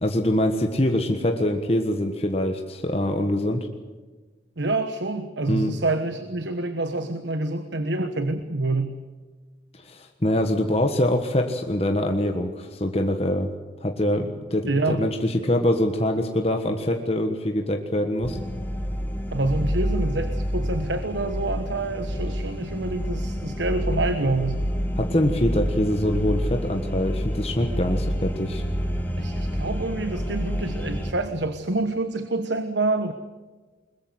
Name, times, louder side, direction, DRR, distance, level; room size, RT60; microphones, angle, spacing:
voice 1, 0.0-3.7 5.5-5.8 9.7-13.5 13.8-18.4 25.0-28.6, left 1 dB, 35° left, 4 dB, 1.4 m, -24 dB
voice 2, 4.6-9.0 14.7-15.1 19.3-24.6 29.2-33.1, right 2 dB, 80° right, 9 dB, 1.3 m, -27 dB
sound 1, 18.2-31.1, equal, 10° left, 2.3 m, -28 dB
21.5 x 21.5 x 8.0 m, 1.3 s
head